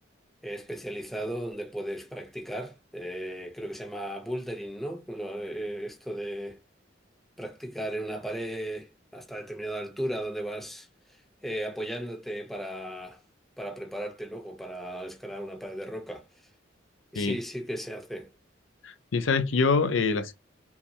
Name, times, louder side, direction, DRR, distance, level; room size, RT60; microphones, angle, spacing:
voice 1, 0.4-6.6 7.4-10.9 11.4-13.2 13.6-16.2 17.1-18.3, right 1 dB, ahead, 0.8 m, -36 dB
voice 2, 18.8-20.3, left 4 dB, 75° left, 0.5 m, -25 dB
5.6 x 2.1 x 2.7 m
head